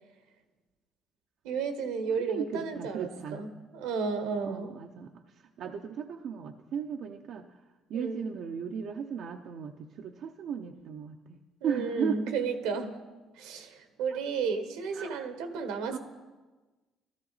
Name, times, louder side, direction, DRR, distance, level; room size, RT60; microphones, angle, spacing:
voice 1, 1.4-4.7 7.9-8.2 11.6-13.0 13.4-16.0, right 5 dB, 85° right, 8 dB, 1.3 m, -33 dB
voice 2, 2.3-3.5 4.5-5.1 5.6-7.6 7.9-12.2 14.1-14.2 14.9-15.2 15.9-16.0, right 7 dB, 65° right, 3 dB, 0.7 m, -36 dB
13.5 x 13.0 x 4.1 m, 1.2 s
supercardioid pair, 70°, 0 cm